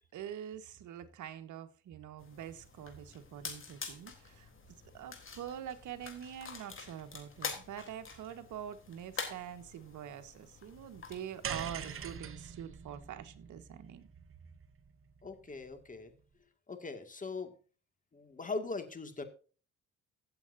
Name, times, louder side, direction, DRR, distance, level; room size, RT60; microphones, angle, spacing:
voice 1, 0.1-4.5 4.9-14.1, right 10 dB, 75° right, 1.5 m, -45 dB
sound 1, 2.2-12.2, left 5 dB, 45° left, 3.5 m, -47 dB
sound 2, 11.4-15.8, right 7 dB, 45° right, 1.3 m, -44 dB
voice 2, 15.2-16.1 16.7-17.5 18.1-19.2, left 3 dB, 25° left, 2.2 m, -40 dB
16.5 x 7.9 x 2.7 m
cardioid pair, 90°, 30 cm